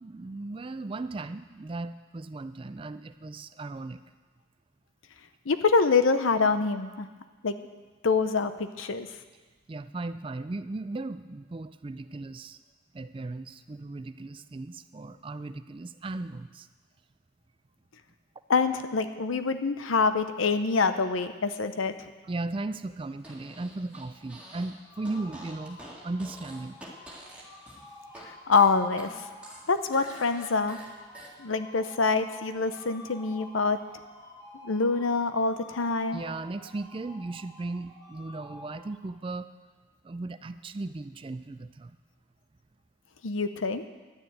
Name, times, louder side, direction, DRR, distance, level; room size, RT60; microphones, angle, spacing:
voice 1, 0.0-4.0 9.7-12.6 12.9-16.7 22.2-26.8 36.1-39.5 40.0-42.0, right 2 dB, 25° right, 12 dB, 0.3 m, -37 dB
voice 2, 5.5-7.1 7.4-7.6 8.0-9.1 18.5-21.9 28.3-29.3 29.7-30.8 31.4-33.8 34.6-36.2 43.2-43.9, left 4 dB, 90° left, 10 dB, 0.7 m, -25 dB
Fart, 23.2-24.7 25.0-28.3 28.5-31.3, right 1 dB, 5° right, 1.9 m, -47 dB
sound 1, 24.1-39.4, left 1 dB, 20° left, 3.4 m, -51 dB
11.5 x 6.7 x 9.1 m, 1.3 s
head